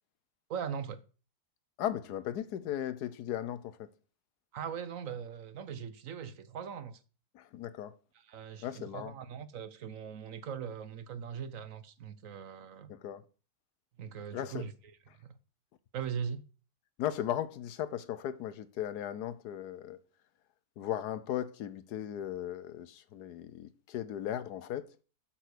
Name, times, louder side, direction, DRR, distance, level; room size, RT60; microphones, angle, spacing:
voice 1, 0.5-1.0 4.5-7.0 8.1-12.9 14.0-14.7 15.9-16.4, right 7 dB, 60° right, 1.2 m, -40 dB
voice 2, 1.8-3.9 7.3-7.9 8.6-9.1 12.9-13.2 14.3-14.6 17.0-20.0 20.8-24.9, left 11 dB, 90° left, 1.3 m, -37 dB
8.1 x 5.7 x 6.6 m
omnidirectional pair, 1.7 m